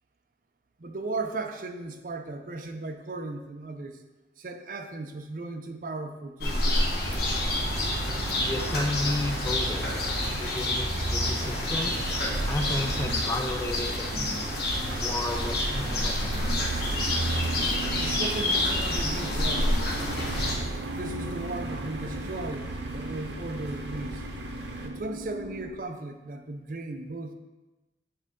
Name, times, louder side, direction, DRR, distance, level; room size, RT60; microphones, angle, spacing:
voice 1, 0.8-4.0 4.4-6.9 18.0-19.7 20.9-24.2 24.8-27.3, right 2 dB, 50° right, 6 dB, 0.5 m, -36 dB
sound 1, 6.4-20.6, left 1 dB, 60° left, 1.1 m, -29 dB
sound 2, 7.0-24.9, right 2 dB, 90° right, 0.7 m, -34 dB
voice 2, 8.4-9.8 10.4-12.0 12.5-14.6 15.0-16.5, left 2 dB, 15° left, 4 dB, 0.4 m, -33 dB
sound 3, 16.7-25.7, right 1 dB, 30° right, 1.1 m, -40 dB
7.9 x 3.6 x 3.7 m, 1.1 s
head